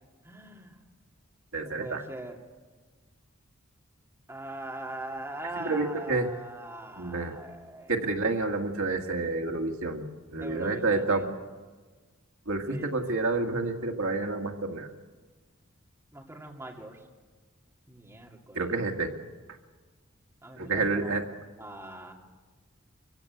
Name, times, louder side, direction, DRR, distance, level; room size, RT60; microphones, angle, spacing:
voice 1, 0.2-0.8 1.6-2.4 4.3-7.9 10.4-11.3 12.7-13.1 16.1-17.0 17.9-18.7 20.4-21.1 21.6-22.1, right 1 dB, 15° right, -1 dB, 2.5 m, -41 dB
voice 2, 1.5-2.0 5.6-6.3 7.0-7.4 7.9-11.4 12.5-14.9 18.6-19.1 20.6-21.2, right 3 dB, 80° right, 3 dB, 1.9 m, -29 dB
24.0 x 16.0 x 8.1 m, 1.4 s
head